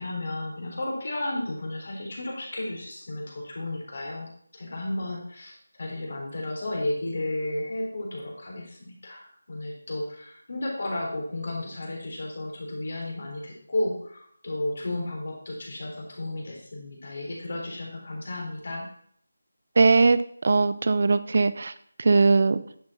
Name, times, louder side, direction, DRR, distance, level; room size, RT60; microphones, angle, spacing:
voice 1, 0.0-18.9, left 1 dB, 50° left, -1 dB, 3.9 m, -33 dB
voice 2, 19.8-21.7 22.0-22.6, right 3 dB, 50° right, 15 dB, 0.6 m, -20 dB
10.5 x 7.6 x 4.2 m, 0.63 s
figure-of-eight pair, 160°, 0 cm